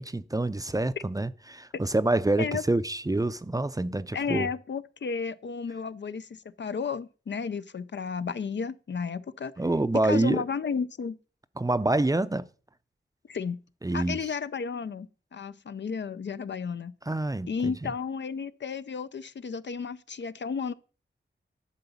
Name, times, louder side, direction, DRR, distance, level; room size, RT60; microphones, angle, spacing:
voice 1, 0.0-4.5 9.6-10.4 11.6-12.5 13.8-14.2 17.1-17.7, right 2 dB, 20° right, 0.5 m, -26 dB
voice 2, 4.1-9.5 10.0-11.2 13.3-13.6 13.9-16.9 17.5-20.7, left 5 dB, 65° left, 0.5 m, -33 dB
11.5 x 3.9 x 7.0 m
wide cardioid pair, 70°, 20 cm